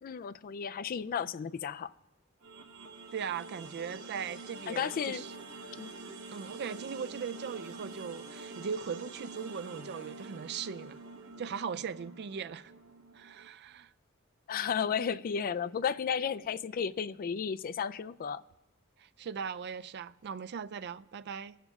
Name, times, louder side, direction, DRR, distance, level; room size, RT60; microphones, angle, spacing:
voice 1, 0.0-1.9 4.7-5.2 5.8-5.9 14.5-18.4, left 7 dB, 45° left, 0.3 m, -33 dB
sound 1, 2.4-13.5, right 3 dB, 85° right, 1.1 m, -47 dB
voice 2, 3.1-5.3 6.3-11.0 11.4-12.7 13.1-13.9 19.0-21.6, right 6 dB, 55° right, 0.4 m, -39 dB
21.5 x 7.2 x 3.6 m
head